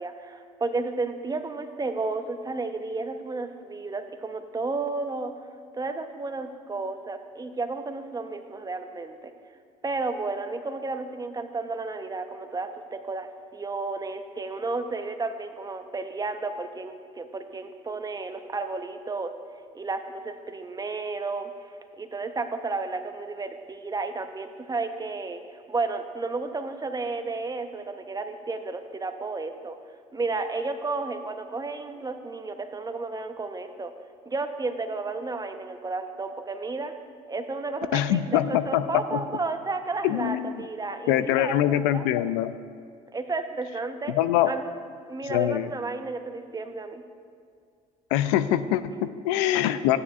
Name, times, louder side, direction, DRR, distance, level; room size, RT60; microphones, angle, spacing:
voice 1, 0.0-5.3 5.7-9.3 9.8-19.3 19.7-29.8 30.1-33.9 34.3-36.9 37.3-42.1 43.1-44.1 44.5-44.6 45.1-47.0, right 3 dB, 25° right, 7 dB, 0.8 m, -32 dB
voice 2, 37.9-39.2 40.0-40.6 41.1-42.5 44.1-44.5 45.3-45.7 48.1-50.0, left 12 dB, 85° left, 13 dB, 0.4 m, -24 dB
12.5 x 9.5 x 2.4 m, 2.2 s
supercardioid pair, 65°, 17 cm